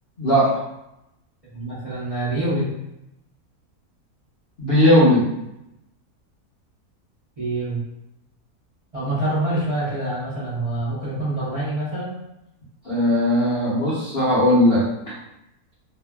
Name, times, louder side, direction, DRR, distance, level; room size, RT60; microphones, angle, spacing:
voice 1, 0.2-0.5 4.6-5.2 12.8-14.8, left 1 dB, 50° left, -9 dB, 0.8 m, -17 dB
voice 2, 1.5-2.7 7.4-7.8 8.9-12.2, right 1 dB, 30° right, -12 dB, 0.7 m, -26 dB
2.7 x 2.5 x 2.2 m, 0.86 s
omnidirectional pair, 1.6 m